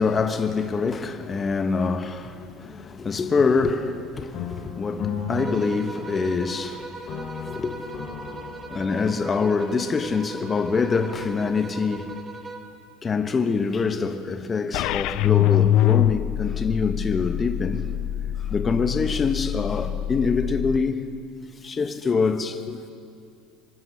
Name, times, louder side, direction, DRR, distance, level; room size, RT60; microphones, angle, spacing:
voice 1, 0.0-6.9 7.4-7.8 8.2-8.3 8.7-12.1 13.0-17.9 18.5-21.1 21.6-22.9, left 4 dB, 25° left, 1.2 m, -25 dB
sound 1, 4.3-6.7 7.1-9.3, left 5 dB, 45° left, 3.5 m, -35 dB
sound 2, 5.4-12.8, right 3 dB, 20° right, 1.9 m, -39 dB
sound 3, 14.7-20.8, left 12 dB, 60° left, 0.6 m, -24 dB
25.0 x 12.5 x 8.4 m
supercardioid pair, 115°, 0 cm